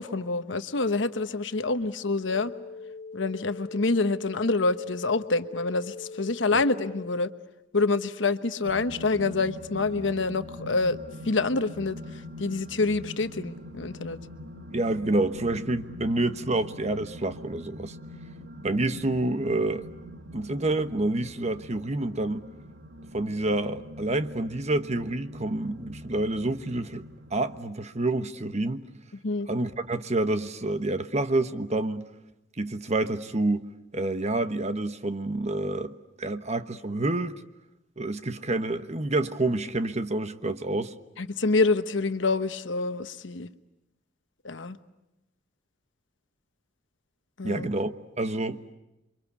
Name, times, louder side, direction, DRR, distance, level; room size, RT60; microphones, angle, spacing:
voice 1, 0.0-2.5 3.1-7.3 7.7-11.0 11.2-14.2 29.2-29.5 41.2-43.5 44.4-44.8 47.4-47.7, left 3 dB, 70° left, 1.1 m, -27 dB
sound 1, 2.2-7.2, left 4 dB, 50° left, 1.3 m, -42 dB
sound 2, 8.6-27.6, equal, 85° right, 1.7 m, -44 dB
voice 2, 14.7-18.0 18.6-19.8 20.3-22.5 23.1-27.0 27.3-28.8 29.5-32.1 32.6-33.6 33.9-37.4 38.0-40.9 47.4-48.6, right 2 dB, 35° right, 1.2 m, -28 dB
28.5 x 24.5 x 8.4 m
head